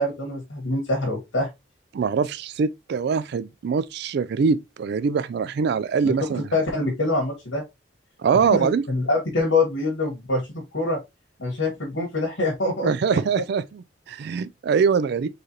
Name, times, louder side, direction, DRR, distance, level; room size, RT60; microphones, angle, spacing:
voice 1, 0.0-1.5 6.0-6.1 6.5-7.6 8.5-11.0 11.4-12.9, left 2 dB, 80° left, 1.6 m, -25 dB
voice 2, 1.9-6.4 8.2-8.8 12.8-15.3, right 5 dB, 60° right, 0.3 m, -23 dB
4.6 x 3.2 x 2.9 m
head